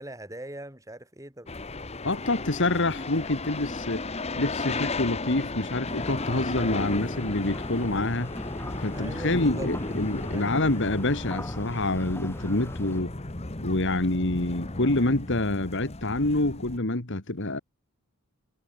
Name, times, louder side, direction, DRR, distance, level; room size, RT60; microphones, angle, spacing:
voice 1, 0.0-1.5 8.9-9.7 10.3-10.5, right 1 dB, 15° right, 5.8 m, -40 dB
sound 1, 1.5-16.8, left 2 dB, 30° left, 1.3 m, -35 dB
voice 2, 2.0-4.1 4.4-8.3 8.8-13.1 13.6-17.6, left 2 dB, 55° left, 2.1 m, -27 dB
sound 2, 5.9-13.0, left 1 dB, 10° left, 1.4 m, -40 dB
head